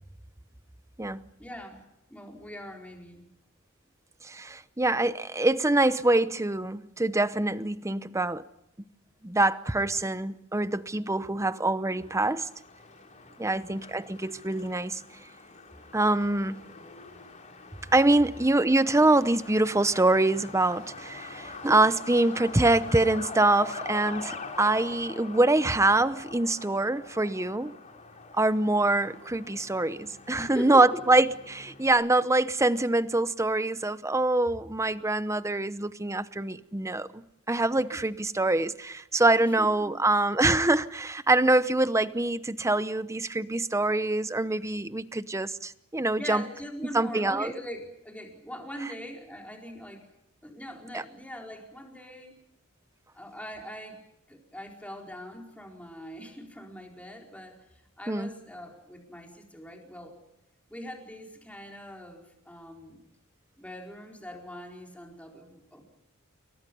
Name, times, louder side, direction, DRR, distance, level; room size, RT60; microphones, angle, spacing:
voice 1, 1.4-1.8 2.1-3.2 13.4-13.8 30.4-31.0 37.9-38.0 39.4-39.9 46.2-50.1 50.4-52.4 53.1-54.0 54.3-60.2 60.7-63.0 63.6-65.8, equal, 5° left, 4.6 m, -42 dB
voice 2, 4.2-8.4 9.2-12.5 13.4-15.0 15.9-16.6 17.9-27.8 28.3-37.2 37.5-46.4 46.9-47.5 50.9-51.0 58.1-58.3, right 2 dB, 15° right, 0.8 m, -25 dB
Truck, 11.9-31.9, left 3 dB, 35° left, 3.5 m, -44 dB
28.5 x 23.5 x 5.5 m
head